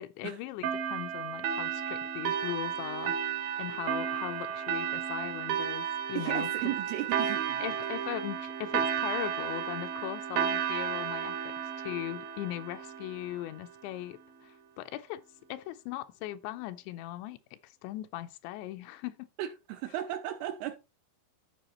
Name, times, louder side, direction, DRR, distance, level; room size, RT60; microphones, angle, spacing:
voice 1, 0.0-6.7 7.6-15.2 15.5-19.3, left 14 dB, 85° left, 2.8 m, -39 dB
sound 1, 0.6-13.7, right 8 dB, 70° right, 2.3 m, -33 dB
voice 2, 6.2-7.8 19.4-20.8, right 13 dB, 85° right, 2.4 m, -35 dB
14.0 x 5.1 x 2.9 m
omnidirectional pair, 5.2 m